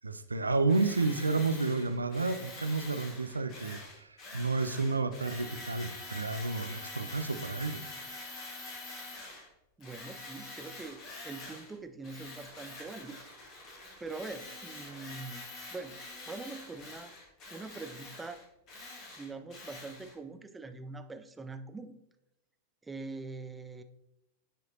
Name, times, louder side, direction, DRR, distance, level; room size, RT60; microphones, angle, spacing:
voice 1, 0.0-4.1 4.3-7.8, right 3 dB, 80° right, 10 dB, 0.5 m, -31 dB
Tools, 0.7-9.5 9.8-11.7 12.0-20.1, left 2 dB, 35° left, 2.5 m, -46 dB
voice 2, 9.8-13.2 14.0-15.4 15.7-16.0 16.3-17.1 17.5-18.4 19.2-22.0 22.8-23.8, right 3 dB, 10° right, 9 dB, 0.5 m, -43 dB
10.0 x 5.0 x 2.8 m, 0.89 s
figure-of-eight pair, 90°, 0 cm